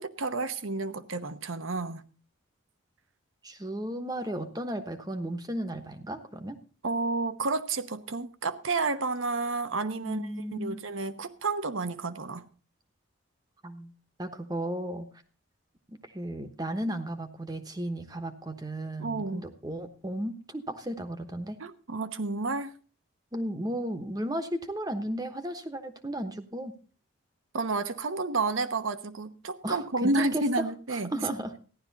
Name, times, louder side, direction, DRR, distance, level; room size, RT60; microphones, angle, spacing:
voice 1, 0.0-2.0 6.8-12.5 19.0-19.4 21.6-22.7 27.5-31.1, right 3 dB, 80° right, 1.0 m, -31 dB
voice 2, 3.4-6.6 10.0-10.8 13.6-13.9 14.2-15.1 15.9-21.6 23.3-26.7 29.6-30.6 30.9-31.6, right 1 dB, 20° right, 1.1 m, -34 dB
14.5 x 11.0 x 4.1 m
head